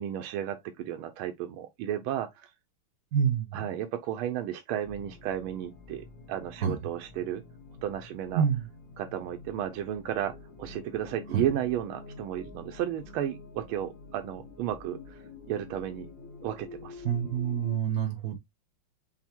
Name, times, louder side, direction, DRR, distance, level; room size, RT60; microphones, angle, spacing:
voice 1, 0.0-2.5 3.5-7.4 7.8-8.4 9.0-16.1 16.4-17.1, right 11 dB, 80° right, 1.4 m, -33 dB
voice 2, 3.1-3.6 6.6-6.8 8.3-8.6 11.3-11.4 17.0-18.4, right 8 dB, 60° right, 1.0 m, -27 dB
sound 1, 4.8-17.8, left 3 dB, 60° left, 1.8 m, -48 dB
5.8 x 2.1 x 4.3 m
omnidirectional pair, 2.4 m